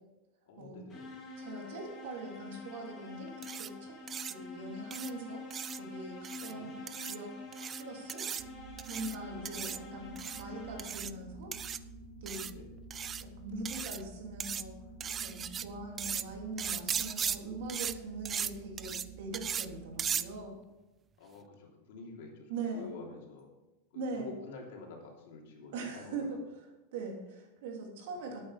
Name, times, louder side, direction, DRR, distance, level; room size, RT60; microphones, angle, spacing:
voice 1, 0.5-1.1 6.4-6.7 12.4-12.6 21.2-23.5 23.9-26.4 28.1-28.4, left 4 dB, 70° left, 0 dB, 3.1 m, -49 dB
sound 1, 0.9-11.2, left 3 dB, 15° left, 3.8 m, -47 dB
voice 2, 1.4-3.9 4.2-7.3 7.7-8.3 8.9-11.5 12.2-12.5 13.2-14.7 15.1-20.6 22.5-22.9 23.9-24.3 25.7-26.7 26.9-28.4, right 2 dB, 65° right, 0 dB, 3.1 m, -42 dB
sound 2, 3.4-3.7 4.1-4.3 4.9-5.1 5.5-5.8 6.2-6.5 6.9-7.2 7.5-7.8 8.1-8.4 8.8-9.1 9.4-9.8 10.1-10.4 10.8-11.1 11.5-11.8 12.3-12.5 12.9-13.2 13.6-14.0 14.4-14.6 15.0-15.6 16.0-16.2 16.6-17.4 17.7-17.9 18.2-18.5 18.8-19.0 19.3-19.7 20.0-20.2, right 8 dB, 20° right, 0.3 m, -37 dB
sound 3, 8.4-20.3, right 4 dB, 40° right, 1.3 m, -50 dB
12.0 x 8.8 x 5.1 m, 1.0 s
supercardioid pair, 170°, 0 cm